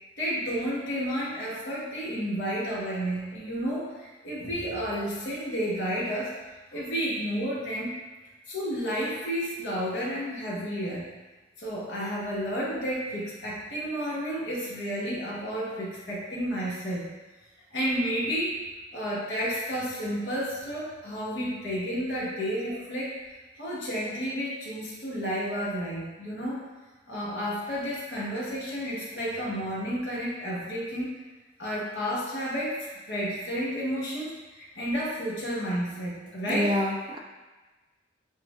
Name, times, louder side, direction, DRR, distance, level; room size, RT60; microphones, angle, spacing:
voice 1, 0.2-6.3 6.7-7.9 8.5-11.1 11.6-17.1 17.7-18.6 18.9-23.1 23.6-26.6 27.1-31.1 31.6-36.7, equal, 65° left, -7 dB, 1.4 m, -31 dB
voice 2, 36.5-37.2, left 1 dB, 25° right, 1 dB, 0.5 m, -27 dB
7.4 x 2.5 x 2.4 m, 1.2 s
head